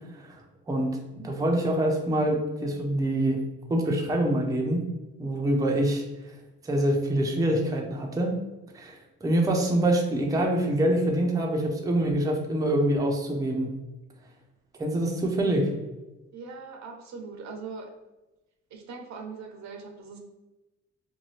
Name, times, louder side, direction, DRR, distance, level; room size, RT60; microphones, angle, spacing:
voice 1, 0.7-3.4 3.7-4.8 5.2-6.0 6.6-8.3 8.7-13.7 14.8-15.7, right 1 dB, 10° right, 0 dB, 0.5 m, -25 dB
voice 2, 16.3-17.9 18.7-20.2, right 4 dB, 65° right, 3 dB, 0.7 m, -41 dB
2.7 x 2.2 x 3.1 m, 1.1 s
cardioid pair, 90°, 30 cm